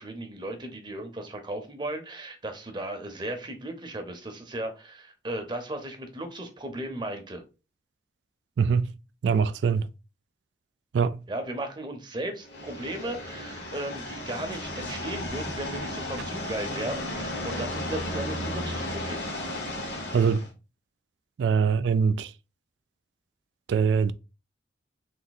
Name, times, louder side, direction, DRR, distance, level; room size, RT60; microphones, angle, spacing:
voice 1, 0.0-7.4 11.3-19.2, right 1 dB, 25° right, 0.8 m, -36 dB
voice 2, 8.6-8.9 9.2-9.9 10.9-11.2 20.1-20.5 21.4-22.3 23.7-24.1, right 6 dB, 85° right, 0.3 m, -23 dB
sound 1, 12.4-20.5, left 1 dB, 80° left, 1.6 m, -34 dB
3.5 x 2.7 x 4.0 m
head